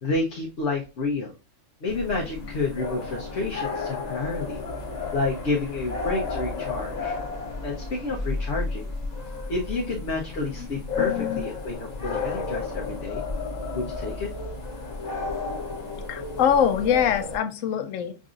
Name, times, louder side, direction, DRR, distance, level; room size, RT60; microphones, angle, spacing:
voice 1, 0.0-1.3 1.8-4.6 5.1-7.2 7.6-8.9 9.5-11.7 12.0-13.2 13.7-14.3, left 3 dB, 65° left, -2 dB, 1.1 m, -29 dB
sound 1, 1.9-17.4, left 3 dB, 40° left, 0.9 m, -32 dB
voice 2, 11.0-11.4 16.1-18.2, left 8 dB, 90° left, 9 dB, 1.0 m, -24 dB
6.1 x 2.6 x 2.5 m, 0.31 s
omnidirectional pair, 1.3 m